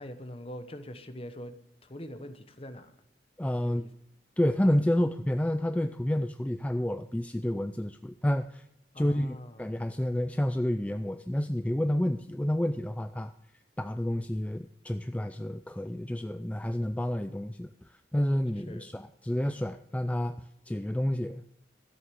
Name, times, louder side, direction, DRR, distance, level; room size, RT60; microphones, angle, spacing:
voice 1, 0.0-1.6 1.8-2.9 3.6-3.9 8.9-9.7 18.7-18.9, equal, 30° left, 9 dB, 1.1 m, -43 dB
voice 2, 3.4-3.8 4.4-8.6 9.0-13.3 13.8-21.4, left 1 dB, 10° left, 9 dB, 0.4 m, -29 dB
13.5 x 7.9 x 7.0 m, 0.78 s
head